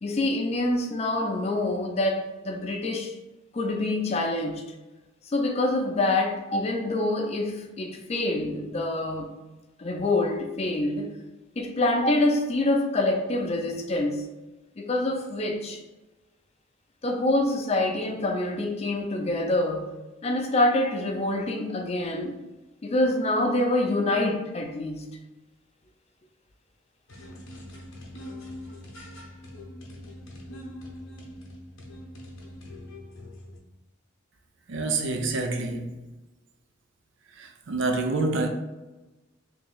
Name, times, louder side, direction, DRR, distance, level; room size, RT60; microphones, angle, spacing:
voice 1, 0.0-3.2 3.5-4.6 5.3-9.3 9.8-11.2 11.6-14.3 14.8-15.8 17.0-19.9 20.2-22.4 22.8-25.1, left 2 dB, 30° left, 0.4 m, -26 dB
sound 1, 27.1-33.6, left 1 dB, 80° left, 0.8 m, -43 dB
voice 2, 34.7-36.0 37.4-38.5, right 3 dB, 65° right, 0.5 m, -27 dB
3.1 x 2.7 x 3.8 m
head